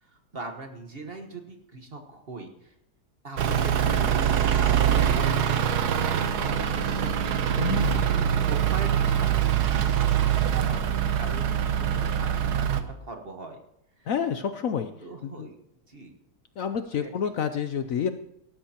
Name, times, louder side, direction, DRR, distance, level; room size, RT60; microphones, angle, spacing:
voice 1, 0.0-2.7 3.2-7.0 8.5-13.6 14.0-14.1 15.0-15.6 15.9-16.2 17.0-17.3, right 2 dB, 35° right, 4 dB, 1.4 m, -41 dB
Truck / Idling, 3.4-12.8, right 9 dB, 70° right, 1.4 m, -24 dB
voice 2, 7.6-8.1 14.1-14.9 15.2-15.5 16.6-18.1, left 7 dB, 65° left, 9 dB, 0.9 m, -28 dB
18.0 x 13.0 x 2.9 m, 0.81 s
omnidirectional pair, 1.8 m